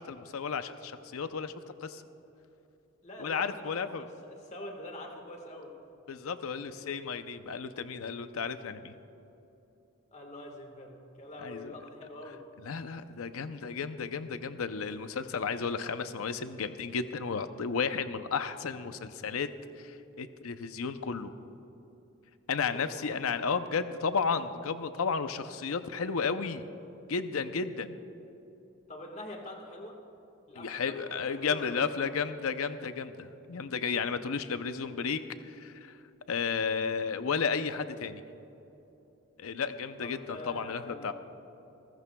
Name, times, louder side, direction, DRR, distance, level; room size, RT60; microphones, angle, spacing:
voice 1, 0.0-1.5 1.8-2.0 3.2-4.0 6.1-9.0 11.4-11.7 12.6-19.5 19.8-21.3 22.5-26.6 27.1-28.0 30.6-36.0 36.3-38.2 39.4-41.1, left 5 dB, 85° left, 10 dB, 0.6 m, -33 dB
voice 2, 3.0-5.7 10.1-12.4 22.6-23.2 28.9-30.0 30.5-32.0 40.0-41.1, left 1 dB, 30° left, 2 dB, 1.5 m, -45 dB
26.5 x 14.5 x 2.3 m, 3.0 s
head